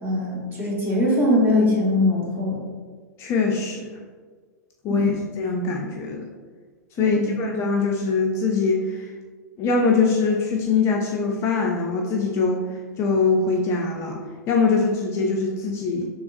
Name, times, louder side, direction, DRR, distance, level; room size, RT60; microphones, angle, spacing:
voice 1, 0.0-2.6 4.9-5.2 7.0-7.4, left 1 dB, 20° right, -4 dB, 1.0 m, -22 dB
voice 2, 3.2-3.9 4.8-6.3 7.0-9.1 9.6-12.6 13.0-16.1, left 4 dB, 30° left, 0 dB, 0.4 m, -23 dB
3.4 x 3.3 x 2.4 m, 1.5 s
figure-of-eight pair, 100°, 9 cm